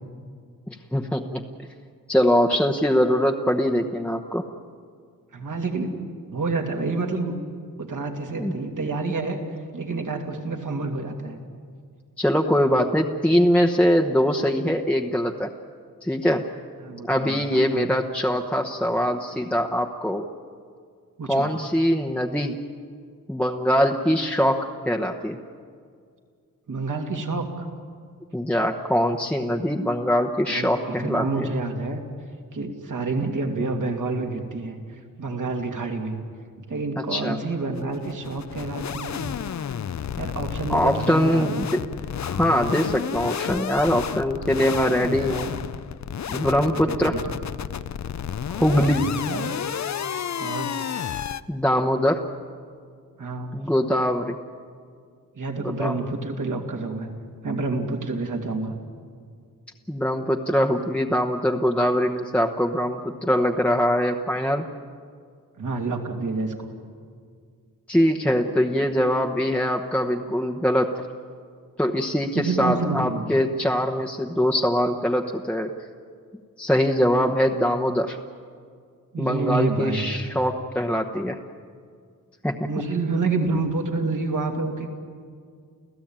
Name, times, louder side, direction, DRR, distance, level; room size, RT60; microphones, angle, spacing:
voice 1, 0.7-1.4 2.1-4.4 8.4-8.5 12.2-15.5 16.0-16.4 17.1-20.2 21.3-22.6 23.3-25.4 28.3-31.5 37.1-37.4 40.7-41.8 42.3-45.5 46.3-47.2 48.5-49.1 51.5-52.2 53.5-54.4 55.8-55.9 59.9-64.7 67.9-70.9 71.8-75.7 76.6-78.2 79.2-81.4 82.4-82.7, equal, 5° left, 2 dB, 1.0 m, -22 dB
voice 2, 5.3-6.0 6.3-7.3 7.8-9.4 9.7-11.4 16.8-17.9 21.2-21.5 26.7-27.6 30.5-32.0 32.5-36.2 36.6-39.3 40.2-41.6 44.9-45.4 46.7-47.4 48.5-48.9 49.3-49.5 50.4-50.8 53.2-53.5 55.3-57.1 57.4-58.8 65.6-66.7 72.3-73.3 79.1-80.2 82.7-84.9, right 3 dB, 65° right, 3 dB, 2.7 m, -28 dB
sound 1, 37.8-51.4, left 8 dB, 55° left, 0.6 m, -31 dB
30.0 x 15.5 x 8.9 m, 2.1 s
wide cardioid pair, 140°, 33 cm